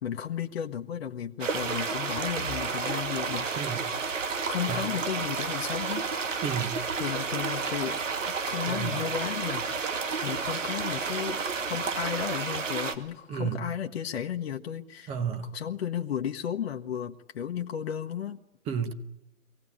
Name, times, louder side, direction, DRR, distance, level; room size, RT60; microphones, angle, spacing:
voice 1, 0.0-3.5 4.4-6.4 7.0-8.0 8.3-9.9 10.2-15.1 15.4-18.4, left 9 dB, 50° left, 1.3 m, -34 dB
sound 1, 1.4-13.0, right 5 dB, 65° right, 2.3 m, -31 dB
sound 2, 2.4-14.2 14.6-14.9 15.3-15.4 16.3-16.8, right 1 dB, 50° right, 4.1 m, -55 dB
voice 2, 6.4-6.8 8.7-9.0 13.3-13.6 15.1-15.5 18.7-18.9, right 7 dB, 15° right, 1.1 m, -31 dB
23.5 x 17.5 x 9.9 m
hypercardioid pair, 145°, 41 cm